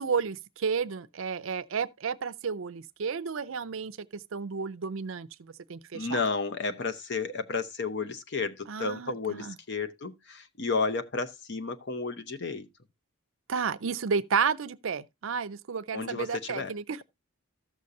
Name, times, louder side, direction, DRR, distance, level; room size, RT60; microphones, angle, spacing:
voice 1, 0.0-4.0 4.3-6.2 8.7-9.5 13.5-17.0, right 6 dB, 60° right, 0.5 m, -32 dB
voice 2, 5.9-12.7 15.9-16.7, left 4 dB, 50° left, 0.8 m, -32 dB
14.0 x 6.4 x 2.7 m
head